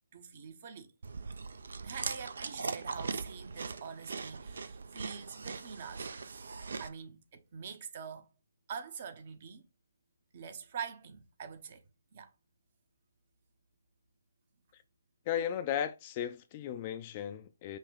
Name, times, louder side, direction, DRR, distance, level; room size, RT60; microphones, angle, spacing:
voice 1, 0.1-0.9 1.8-6.1 6.8-8.3 8.7-9.6 10.3-11.8 12.1-12.3, right 6 dB, 45° right, 0.8 m, -45 dB
Chewing mastication, 1.0-6.9, right 4 dB, 65° right, 0.5 m, -40 dB
voice 2, 15.3-17.8, left 9 dB, 30° left, 0.4 m, -35 dB
5.6 x 2.2 x 3.4 m
figure-of-eight pair, 140°, 0 cm